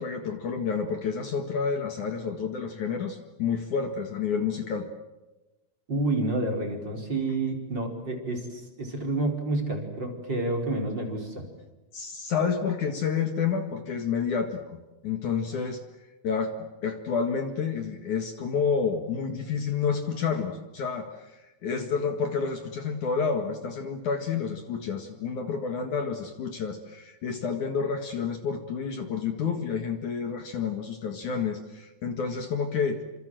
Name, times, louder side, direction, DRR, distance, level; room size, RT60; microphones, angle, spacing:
voice 1, 0.0-4.9 11.9-14.6 15.0-15.8 16.2-16.5 16.8-33.0, left 6 dB, 55° left, 6 dB, 3.0 m, -29 dB
voice 2, 5.9-11.5, right 2 dB, 30° right, 2 dB, 4.9 m, -29 dB
28.5 x 27.0 x 7.7 m, 1.1 s
omnidirectional pair, 4.4 m